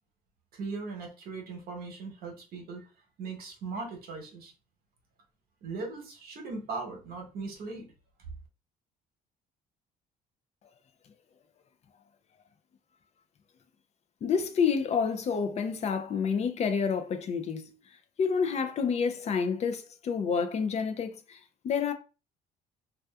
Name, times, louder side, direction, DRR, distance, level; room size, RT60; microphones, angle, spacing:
voice 1, 0.5-2.9 3.2-4.5 5.6-7.9, right 4 dB, 65° right, 1.0 m, -39 dB
voice 2, 14.2-17.7 18.2-21.4 21.6-21.9, left 6 dB, 40° left, 0.4 m, -28 dB
2.7 x 2.2 x 2.2 m
cardioid pair, 110°, 17 cm